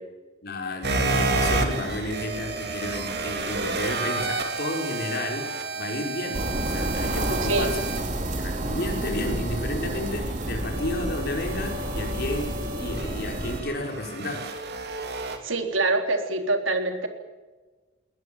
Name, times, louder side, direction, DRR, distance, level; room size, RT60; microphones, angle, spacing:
voice 1, 0.4-7.9 8.4-14.5, left 1 dB, 55° left, 2 dB, 5.5 m, -32 dB
sound 1, 0.8-15.4, right 3 dB, 55° right, 3.2 m, -31 dB
sound 2, 6.3-13.6, right 1 dB, 40° right, 3.3 m, -30 dB
voice 2, 15.4-17.1, right 2 dB, 80° right, 5 dB, 3.8 m, -25 dB
21.5 x 19.5 x 9.2 m, 1.3 s
head